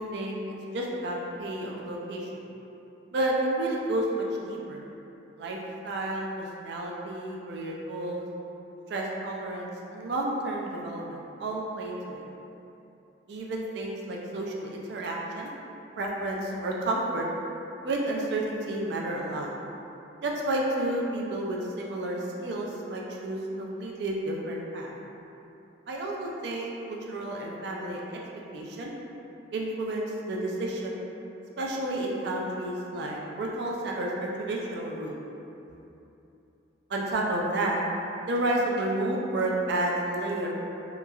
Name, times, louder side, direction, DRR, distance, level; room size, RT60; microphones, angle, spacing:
voice 1, 0.0-2.4 3.1-4.8 5.4-5.6 5.8-8.2 8.9-12.2 13.3-15.5 16.0-17.3 17.8-19.5 20.2-24.9 25.9-28.2 28.5-28.9 29.5-31.0 31.6-35.1 36.9-37.8 38.3-40.5, right 1 dB, 60° right, -2 dB, 0.3 m, -31 dB
2.9 x 2.3 x 2.2 m, 2.9 s
head